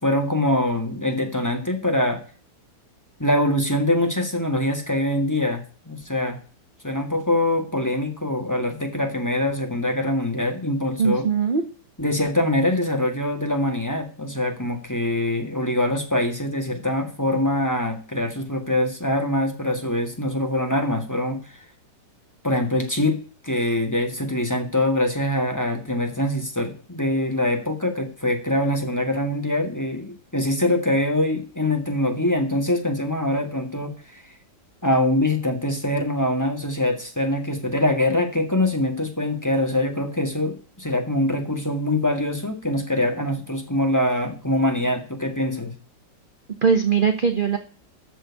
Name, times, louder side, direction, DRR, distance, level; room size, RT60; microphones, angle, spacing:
voice 1, 0.0-2.2 3.2-6.4 6.8-11.3 12.0-21.6 22.4-23.2 23.4-34.2 34.8-45.7, left 1 dB, 10° left, 3 dB, 1.8 m, -24 dB
voice 2, 11.0-11.6 46.6-47.6, right 6 dB, 35° right, 7 dB, 0.9 m, -20 dB
13.5 x 4.6 x 8.3 m, 0.39 s
omnidirectional pair, 2.0 m